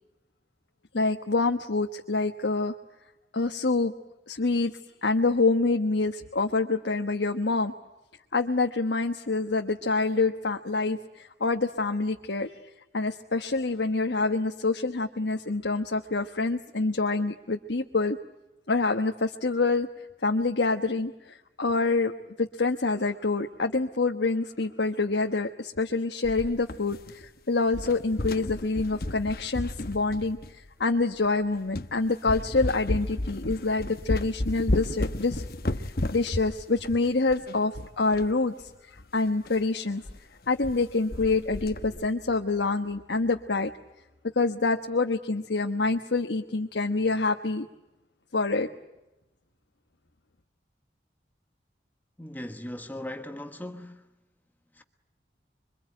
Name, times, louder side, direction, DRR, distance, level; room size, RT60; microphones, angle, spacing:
voice 1, 0.9-2.7 3.3-3.9 4.3-4.7 5.0-7.7 8.3-12.5 12.9-18.2 18.7-19.9 20.2-22.1 22.4-35.5 36.1-40.0 40.5-43.7 44.4-47.7 48.3-48.7, left 3 dB, 85° left, 1.2 m, -26 dB
sound 1, 26.2-27.4 27.7-30.7 31.2-31.3 31.7-31.9 32.3-38.3 38.6-38.7 38.9-39.0 39.5-39.6 40.0-40.2 40.4-40.8 41.1-42.1, left 1 dB, 55° left, 1.0 m, -33 dB
voice 2, 52.2-54.1 54.7-54.8, left 1 dB, 10° left, 1.2 m, -38 dB
26.5 x 24.0 x 9.0 m
head